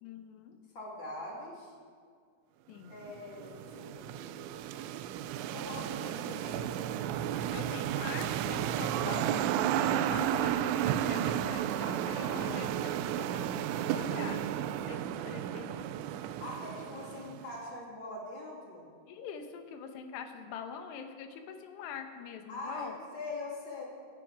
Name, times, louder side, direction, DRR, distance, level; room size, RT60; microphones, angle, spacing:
voice 1, 0.0-0.6 2.7-2.9 7.5-15.0 15.2-15.9 19.1-22.9, left 7 dB, 70° left, 6 dB, 2.8 m, -44 dB
voice 2, 0.7-1.7 2.9-4.6 5.5-6.9 12.1-12.7 16.2-18.9 22.5-23.8, left 2 dB, 30° left, -3 dB, 2.7 m, -43 dB
sound 1, 3.0-17.6, right 10 dB, 85° right, 2.9 m, -33 dB
24.0 x 10.5 x 5.0 m, 2.1 s
omnidirectional pair, 5.8 m